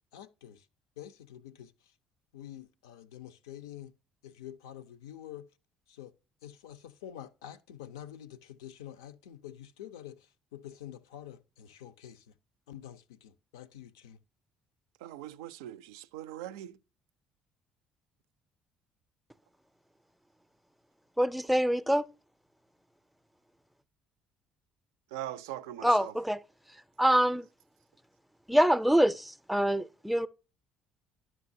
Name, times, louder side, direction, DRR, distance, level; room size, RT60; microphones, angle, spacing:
voice 1, 0.1-0.6 1.0-1.7 2.3-3.9 4.2-5.4 5.9-6.1 6.4-10.2 10.5-12.2 12.7-14.2, left 11 dB, 85° left, 0.4 m, -47 dB
voice 2, 15.0-16.8 25.1-26.1, right 13 dB, 85° right, 0.3 m, -41 dB
voice 3, 21.2-22.0 25.8-26.4 27.0-27.5 28.5-30.3, equal, ahead, 0.4 m, -25 dB
11.0 x 6.1 x 2.6 m
hypercardioid pair, 60°, 2 cm